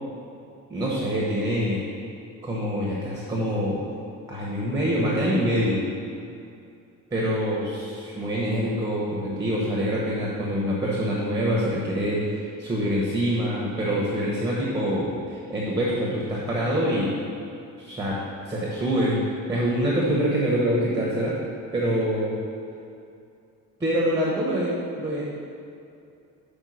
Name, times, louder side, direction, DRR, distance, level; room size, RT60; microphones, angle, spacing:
voice 1, 0.7-1.8 2.4-3.8 4.3-5.8 7.1-17.1 17.8-18.2 18.5-19.2 19.5-21.4 21.7-22.3 23.8-25.2, equal, 10° right, -4 dB, 1.0 m, -25 dB
5.4 x 5.0 x 6.3 m, 2.5 s
cardioid pair, 145°, 33 cm